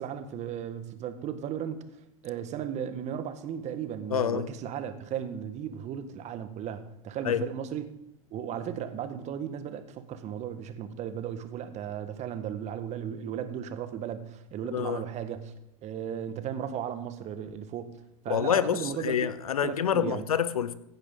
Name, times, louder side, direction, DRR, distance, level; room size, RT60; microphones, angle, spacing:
voice 1, 0.0-1.8 2.2-7.9 8.3-15.5 15.8-18.0 18.2-19.1 19.6-20.3, right 9 dB, 40° right, 1.4 m, -35 dB
voice 2, 4.1-4.5 7.2-7.4 14.7-15.0 18.3-20.7, left 8 dB, 90° left, 0.7 m, -27 dB
15.0 x 9.7 x 3.8 m
hypercardioid pair, 100°, 18 cm